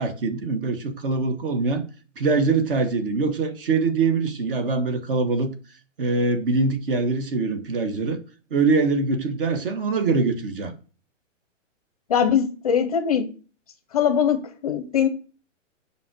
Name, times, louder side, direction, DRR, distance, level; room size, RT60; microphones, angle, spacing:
voice 1, 0.0-1.8 2.2-5.5 6.0-8.2 8.5-10.7, right 4 dB, 45° right, 1.4 m, -23 dB
voice 2, 12.1-13.3 13.9-15.1, left 8 dB, 30° left, 0.7 m, -21 dB
7.5 x 5.7 x 7.7 m
hypercardioid pair, 175°, 38 cm